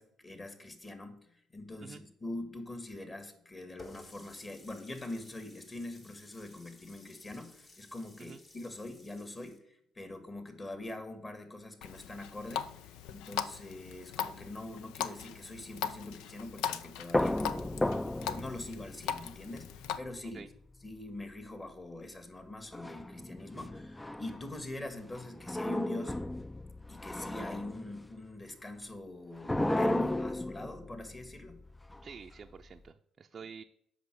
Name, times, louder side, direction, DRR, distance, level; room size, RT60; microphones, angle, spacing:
voice 1, 0.0-17.9 18.3-20.4 20.8-26.2 26.9-31.6, left 2 dB, 25° left, 8 dB, 1.9 m, -43 dB
Water tap faucet, 3.8-9.6, left 2 dB, 45° left, 2.1 m, -56 dB
Water tap faucet 2, 11.8-20.0, left 9 dB, 85° left, 0.5 m, -40 dB
sound 1, 17.1-20.5 22.7-24.7 25.1-28.1 29.4-32.8, left 1 dB, 10° left, 0.4 m, -35 dB
voice 2, 32.0-33.6, right 6 dB, 45° right, 4 dB, 0.5 m, -48 dB
8.1 x 5.9 x 6.3 m, 0.73 s
supercardioid pair, 65°, 0 cm